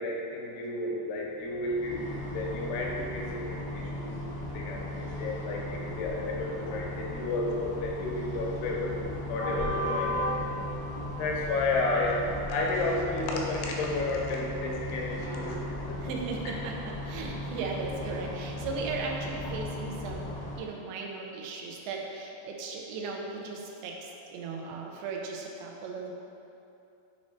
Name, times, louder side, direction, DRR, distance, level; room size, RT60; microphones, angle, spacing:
voice 1, 0.0-4.1 4.5-10.5 11.2-12.2 12.5-16.1, left 2 dB, 85° left, -1 dB, 2.5 m, -32 dB
sound 1, 1.5-20.6, left 1 dB, 60° left, 1.1 m, -36 dB
voice 2, 16.0-26.1, right 4 dB, 85° right, 1 dB, 2.8 m, -37 dB
8.4 x 3.2 x 4.2 m, 2.8 s
omnidirectional pair, 4.7 m